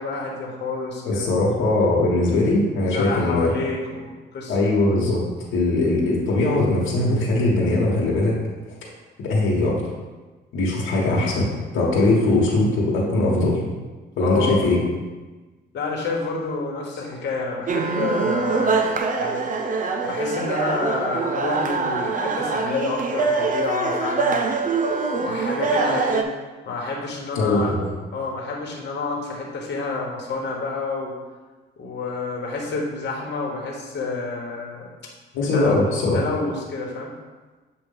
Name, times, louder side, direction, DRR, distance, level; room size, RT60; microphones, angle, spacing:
voice 1, 0.0-1.3 2.9-4.6 14.2-14.7 15.7-19.4 20.0-26.3 26.6-27.7 28.1-31.2 31.8-34.9 35.4-35.8 36.1-37.1, left 3 dB, 60° left, -2 dB, 1.3 m, -29 dB
voice 2, 1.0-3.5 4.5-5.2 5.5-8.4 9.2-9.8 10.5-11.5 11.7-13.6 14.2-14.8 27.3-27.8 35.3-36.2, left 2 dB, 85° left, -4 dB, 1.3 m, -20 dB
sound 1, 17.7-26.2, right 4 dB, 40° right, 0.6 m, -24 dB
7.7 x 2.6 x 5.4 m, 1.3 s
cardioid pair, 90°, 20 cm